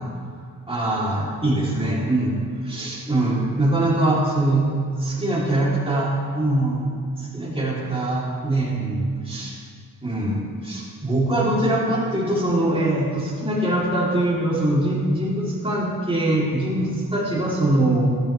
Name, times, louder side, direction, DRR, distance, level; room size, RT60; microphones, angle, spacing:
voice 1, 0.7-2.4 2.6-4.7 5.0-9.5 10.0-18.2, right 1 dB, 15° right, -6 dB, 3.5 m, -23 dB
13.5 x 12.5 x 3.5 m, 2.1 s
wide cardioid pair, 90°, 34 cm